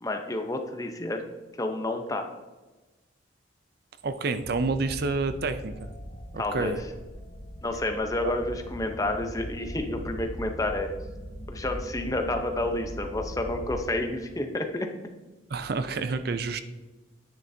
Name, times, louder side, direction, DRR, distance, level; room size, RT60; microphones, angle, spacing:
voice 1, 0.0-1.3 1.6-2.3 6.4-6.7 7.6-10.9 11.5-14.9, left 1 dB, 15° left, 5 dB, 0.7 m, -30 dB
voice 2, 4.0-5.9 6.3-6.8 8.2-8.3 15.5-16.6, right 3 dB, 50° right, 10 dB, 0.5 m, -29 dB
sound 1, 4.4-13.8, equal, 45° left, 1.1 m, -40 dB
10.5 x 9.1 x 2.7 m, 1.2 s
head